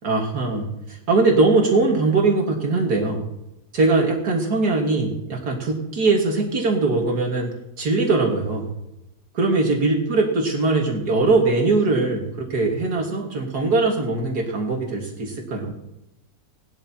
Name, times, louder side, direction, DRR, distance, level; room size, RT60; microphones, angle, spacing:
voice 1, 0.0-3.2 3.7-8.7 9.3-15.7, right 3 dB, 80° right, 0 dB, 2.3 m, -21 dB
18.5 x 12.5 x 2.9 m, 0.88 s
omnidirectional pair, 1.7 m